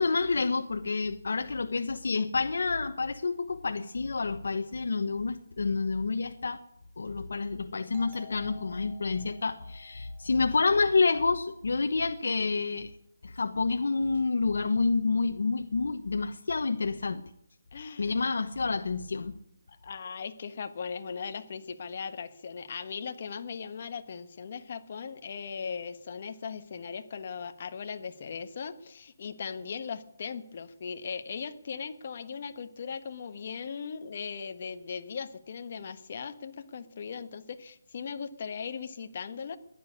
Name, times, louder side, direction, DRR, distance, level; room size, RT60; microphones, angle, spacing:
voice 1, 0.0-6.6 7.0-12.9 13.2-17.2 18.0-19.4, left 4 dB, 70° left, 6 dB, 1.1 m, -28 dB
Doorbell, 7.9-11.3, left 3 dB, 25° right, 3.2 m, -53 dB
voice 2, 17.7-18.1 19.8-39.6, left 6 dB, 40° left, 9 dB, 1.3 m, -38 dB
15.0 x 11.0 x 8.8 m, 0.74 s
hypercardioid pair, 175°, 0 cm